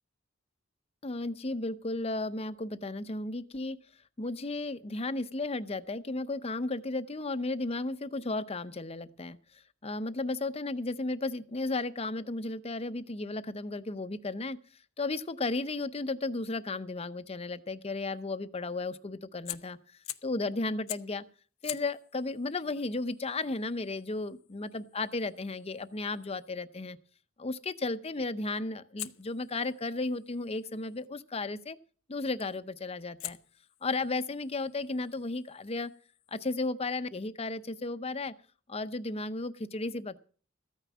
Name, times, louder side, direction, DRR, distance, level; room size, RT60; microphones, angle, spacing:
voice 1, 1.0-3.8 4.2-14.6 15.0-19.8 20.2-21.2 21.6-27.0 27.4-31.8 32.1-33.4 33.8-35.9 36.3-38.3 38.7-40.2, left 2 dB, 30° left, 13 dB, 0.7 m, -34 dB
Fire, 19.4-20.4 20.9-21.2 21.6-26.5 29.0-31.1 32.4-32.7 33.2-36.6, left 16 dB, 85° left, 0.6 m, -47 dB
14.0 x 9.1 x 6.1 m, 0.42 s
head